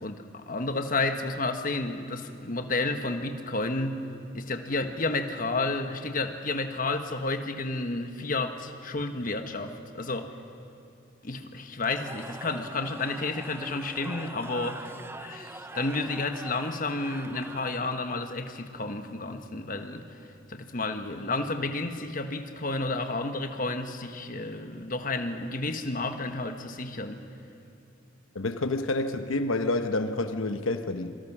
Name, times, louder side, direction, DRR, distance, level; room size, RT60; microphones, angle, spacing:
voice 1, 0.0-4.0 4.3-10.3 11.2-20.1 20.5-27.2, left 2 dB, 40° left, 6 dB, 1.3 m, -31 dB
Cheering / Crowd, 11.8-18.2, right 2 dB, 10° right, 0.5 m, -43 dB
voice 2, 28.3-31.2, left 2 dB, 85° left, 8 dB, 1.0 m, -28 dB
27.0 x 23.5 x 6.2 m, 2.6 s
head